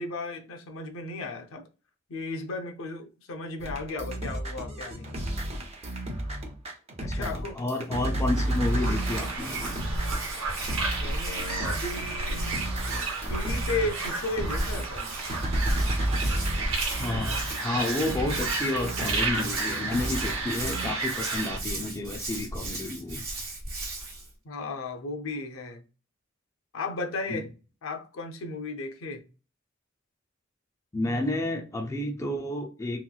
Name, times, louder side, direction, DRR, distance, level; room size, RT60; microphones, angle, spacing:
voice 1, 0.0-1.7 2.1-5.3 7.0-7.6 11.0-12.5 13.3-15.2 16.3-16.4 24.4-25.8 26.7-27.5 27.8-29.2, left 2 dB, 80° left, 0.6 m, -35 dB
sound 1, 3.6-20.9, right 1 dB, 30° right, 0.6 m, -32 dB
voice 2, 7.1-9.8 17.0-23.2 27.3-27.4 30.9-33.0, left 2 dB, 15° left, 0.4 m, -31 dB
sound 2, 8.3-21.6, right 3 dB, 75° right, 0.8 m, -33 dB
Hands, 8.9-24.3, right 1 dB, 45° right, 1.0 m, -36 dB
3.0 x 3.0 x 2.3 m
head